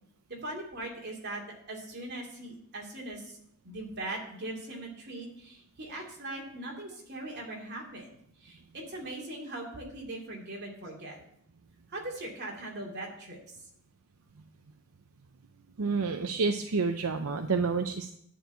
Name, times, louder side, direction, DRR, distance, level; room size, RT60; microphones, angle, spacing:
voice 1, 0.3-1.4 1.7-3.4 3.6-8.2 8.4-11.2 11.9-13.4, right 1 dB, 50° right, -1 dB, 2.6 m, -40 dB
voice 2, 15.8-18.1, right 4 dB, 80° right, 7 dB, 0.6 m, -29 dB
10.5 x 4.6 x 7.9 m, 0.70 s
head